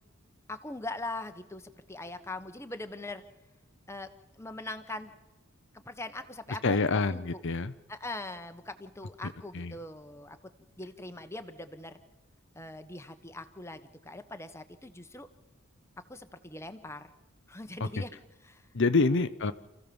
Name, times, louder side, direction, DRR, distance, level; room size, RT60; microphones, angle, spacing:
voice 1, 0.5-3.2 3.9-4.1 4.4-5.1 5.7-7.4 7.9-10.4 10.8-12.0 12.5-15.3 16.1-17.1 17.5-18.2 18.4-18.7 19.1-19.2, left 2 dB, 15° left, 8 dB, 1.3 m, -41 dB
voice 2, 6.6-7.7 9.2-9.7 18.0-18.1 18.7-19.5, left 3 dB, 60° left, 11 dB, 0.8 m, -27 dB
28.0 x 15.5 x 7.1 m, 1.1 s
head